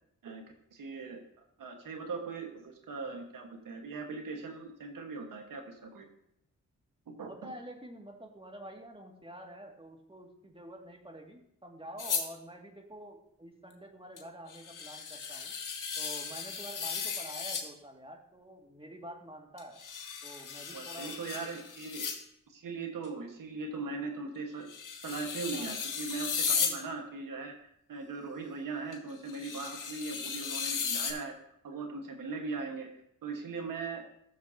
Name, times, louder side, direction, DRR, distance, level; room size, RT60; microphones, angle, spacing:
voice 1, 0.7-1.2 1.6-6.1 7.1-7.5 20.7-22.1 22.5-24.7 25.0-27.5 27.9-31.3 31.6-32.9 33.2-34.0, right 4 dB, 80° right, 4 dB, 1.5 m, -39 dB
voice 2, 7.2-15.5 16.0-19.8 20.2-21.5 25.5-25.8 26.5-26.7, right 1 dB, 15° right, 1 dB, 2.0 m, -48 dB
sound 1, 12.0-12.3 14.2-14.3 14.5-17.7 19.6-22.2 23.0-23.1 24.7-26.8 28.9-29.0 29.3-31.1, left 6 dB, 70° left, 1.4 m, -35 dB
14.5 x 6.8 x 2.8 m, 0.73 s
cardioid pair, 50°, 33 cm